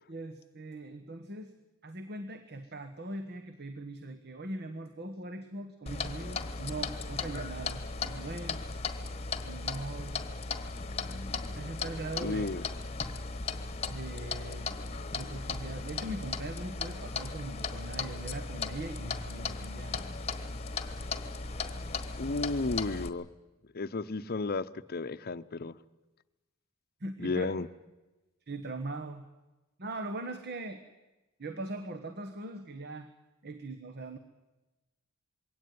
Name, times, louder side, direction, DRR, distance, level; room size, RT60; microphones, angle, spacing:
voice 1, 0.1-1.5 1.8-8.6 9.4-10.2 11.5-12.6 13.9-14.8 15.1-20.0 27.0-27.6 28.5-29.3 29.8-30.8 31.4-33.1 33.4-34.2, right 2 dB, 50° right, 7 dB, 1.3 m, -40 dB
Clock, 5.9-23.1, left 4 dB, 30° left, 1.2 m, -37 dB
voice 2, 12.2-12.6 22.2-23.3 23.7-25.7 27.2-27.7, left 3 dB, 45° left, 13 dB, 0.7 m, -33 dB
22.0 x 17.5 x 9.4 m, 1.1 s
head